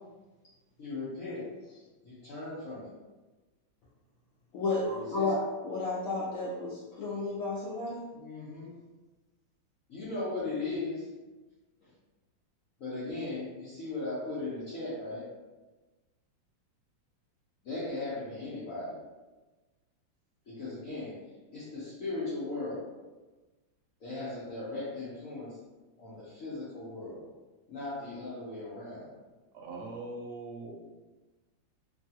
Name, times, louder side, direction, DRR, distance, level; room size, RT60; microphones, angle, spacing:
voice 1, 0.8-1.5 2.0-2.9 4.9-5.3 8.1-8.7 9.9-11.1 12.8-15.3 17.6-19.0 20.5-21.2 21.5-22.9 24.0-25.5 26.0-27.3 27.7-29.1, left 2 dB, 60° left, -10 dB, 0.9 m, -37 dB
voice 2, 4.5-8.0, left 3 dB, 90° left, -7 dB, 0.7 m, -32 dB
voice 3, 29.5-30.8, right 2 dB, 70° right, -1 dB, 1.1 m, -41 dB
3.1 x 2.3 x 2.7 m, 1.2 s
omnidirectional pair, 2.1 m